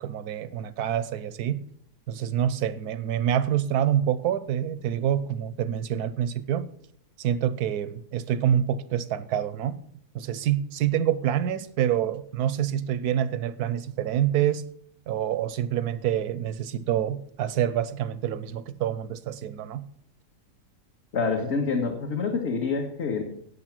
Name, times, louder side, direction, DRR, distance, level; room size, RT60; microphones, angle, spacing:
voice 1, 0.0-1.6 2.1-6.7 7.2-9.8 10.1-14.6 15.1-19.9, right 10 dB, 75° right, 1.2 m, -27 dB
voice 2, 21.1-23.2, left 4 dB, 45° left, 1.6 m, -27 dB
11.0 x 8.5 x 5.9 m
omnidirectional pair, 1.7 m